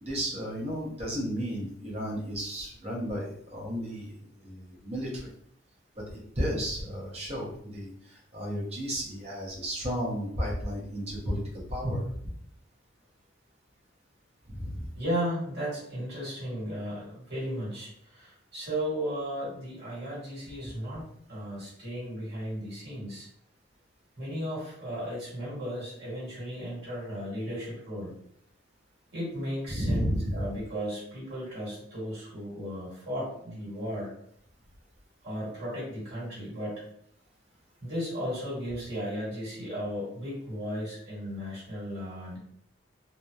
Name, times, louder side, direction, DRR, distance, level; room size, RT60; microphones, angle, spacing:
voice 1, 0.0-5.3 6.0-11.4 11.7-12.0 14.5-14.9 29.7-30.5, equal, 30° right, -4 dB, 0.7 m, -33 dB
voice 2, 14.9-21.0 21.3-23.3 24.2-28.1 29.1-34.1 35.2-36.8 37.8-42.4, equal, 55° right, -8 dB, 1.5 m, -35 dB
2.7 x 2.0 x 2.2 m, 0.69 s
head